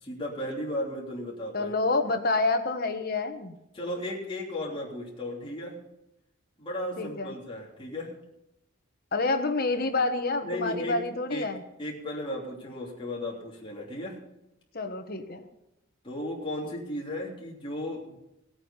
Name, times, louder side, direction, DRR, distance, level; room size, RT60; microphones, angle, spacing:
voice 1, 0.0-1.7 3.7-5.8 6.6-8.1 10.4-11.0 11.3-11.5 11.8-14.2 16.0-18.2, left 1 dB, 25° left, -3 dB, 3.2 m, -35 dB
voice 2, 1.5-3.6 7.0-7.3 9.1-11.6 14.7-15.5, left 3 dB, 50° left, 7 dB, 1.3 m, -28 dB
18.0 x 8.8 x 5.6 m, 0.88 s
head